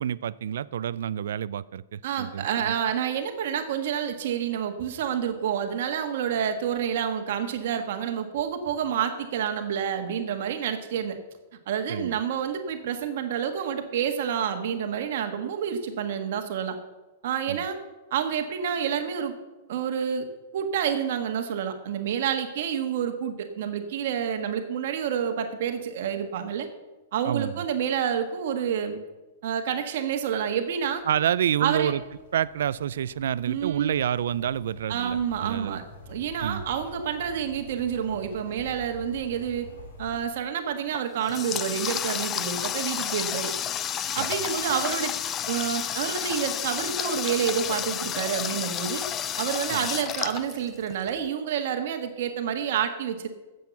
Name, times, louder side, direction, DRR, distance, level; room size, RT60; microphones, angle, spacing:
voice 1, 0.0-2.7 11.9-12.2 17.5-17.6 27.2-27.6 31.1-32.0 32.3-35.8 36.4-36.6 44.2-44.3 49.7-49.8, right 9 dB, 70° right, 19 dB, 0.4 m, -28 dB
voice 2, 2.0-11.2 11.7-16.8 17.2-17.8 18.1-19.3 19.7-20.3 20.5-26.7 27.1-29.0 29.4-31.0 31.6-31.9 33.4-33.9 34.9-39.7 40.0-43.5 44.1-45.1 45.5-49.0 49.4-53.3, right 8 dB, 50° right, 6 dB, 1.4 m, -28 dB
sound 1, 30.6-40.2, left 3 dB, 55° left, 2.6 m, -47 dB
Water tap faucet, 40.9-51.1, left 9 dB, 15° left, 0.3 m, -31 dB
12.0 x 7.8 x 7.0 m, 1.2 s
supercardioid pair, 180°, 0 cm